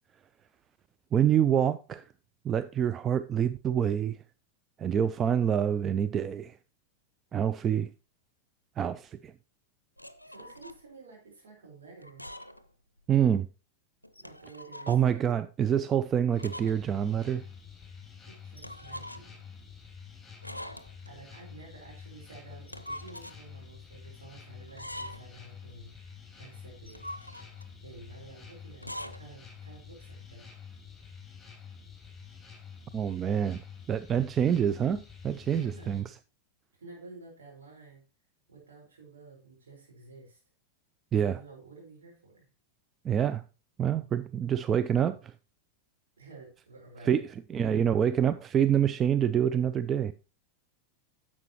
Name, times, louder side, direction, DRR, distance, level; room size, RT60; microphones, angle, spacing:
voice 1, 1.1-2.0 2.4-4.2 4.8-6.6 7.3-7.9 8.8-9.3 13.1-13.5 14.9-17.4 32.9-33.6 33.9-36.1 41.1-41.4 43.0-43.4 43.8-45.3 47.0-50.1, right 9 dB, 25° right, 0.3 m, -26 dB
sound 1, 10.0-10.8 12.0-12.7 13.0-13.1 14.0-15.1 16.4-16.8 17.1-17.2 18.6-19.4 20.4-21.1 22.5-23.4 24.7-25.4 26.7-27.7 28.7-29.2, equal, 85° left, 0.5 m, -43 dB
voice 2, 10.2-12.2 14.2-15.4 18.3-19.4 21.1-27.1 27.8-30.5 35.4-36.0 36.7-38.0 38.5-40.4 41.1-42.5 46.2-47.2, right 3 dB, 65° right, 4.6 m, -51 dB
sound 2, 16.3-36.0, left 6 dB, 5° left, 4.4 m, -49 dB
10.5 x 7.3 x 3.0 m
figure-of-eight pair, 90°, 0 cm